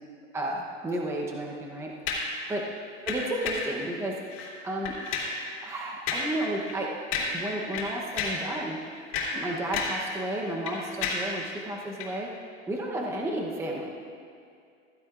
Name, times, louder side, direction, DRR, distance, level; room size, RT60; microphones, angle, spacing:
voice 1, 0.3-1.9 2.5-2.7 3.1-4.2 4.6-5.0 5.6-7.0 7.3-8.8 9.3-12.3 12.7-13.9, right 1 dB, 5° right, -1 dB, 0.8 m, -32 dB
sound 1, 2.1-2.4 3.1-3.7 4.3-4.5 4.8-5.4 6.1-6.4 6.7-6.8 7.1-7.5 7.7-8.5 8.9-10.1 10.3-11.4 12.0-12.1, left 4 dB, 45° left, 2.9 m, -31 dB
15.0 x 15.0 x 2.4 m, 2.4 s
supercardioid pair, 150°, 38 cm